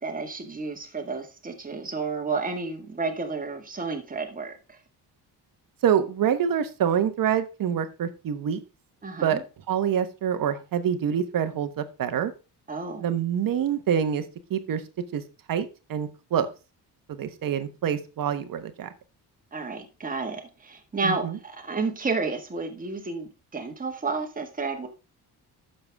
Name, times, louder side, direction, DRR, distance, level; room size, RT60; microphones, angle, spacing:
voice 1, 0.0-4.8 9.0-9.4 12.7-13.1 19.5-24.9, right 4 dB, 20° right, 3 dB, 1.7 m, -31 dB
voice 2, 5.8-8.6 9.2-9.4 9.7-12.3 13.0-14.2 14.5-14.8 15.1-15.2 15.5-16.5 17.1-18.9 21.0-21.4, right 8 dB, 55° right, 10 dB, 1.2 m, -26 dB
11.0 x 6.9 x 3.5 m, 0.31 s
cardioid pair, 135°, 40 cm